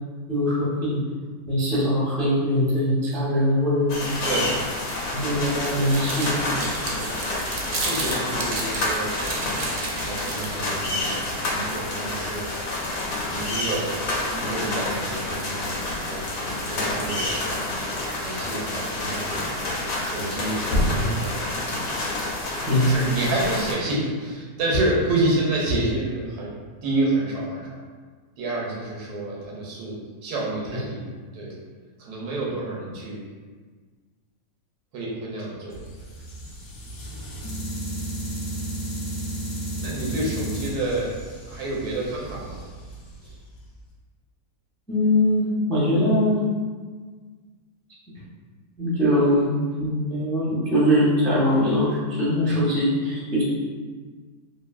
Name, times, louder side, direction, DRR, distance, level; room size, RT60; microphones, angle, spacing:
voice 1, 0.3-1.0 1.5-4.0 5.1-6.4 20.9-21.1 22.7-23.0 30.7-30.8 44.9-46.4 48.8-53.4, left 1 dB, 5° left, -8 dB, 0.3 m, -22 dB
sound 1, 3.9-23.7, left 1 dB, 90° left, 1.2 m, -28 dB
sound 2, 5.0-10.7, right 3 dB, 70° right, 0.6 m, -33 dB
voice 2, 7.8-9.5 9.9-11.1 11.5-12.5 13.2-14.0 14.3-16.2 16.6-17.5 18.2-19.5 20.0-21.4 22.9-26.5 26.8-27.8 28.4-31.0 31.3-31.5 32.0-33.2 34.9-35.7 39.8-41.1 41.5-42.6 43.2-43.4, right 2 dB, 90° right, -3 dB, 1.2 m, -28 dB
sound 3, 35.7-43.8, right 1 dB, 70° left, 1.0 m, -34 dB
3.0 x 2.6 x 2.3 m, 1.5 s
omnidirectional pair, 1.6 m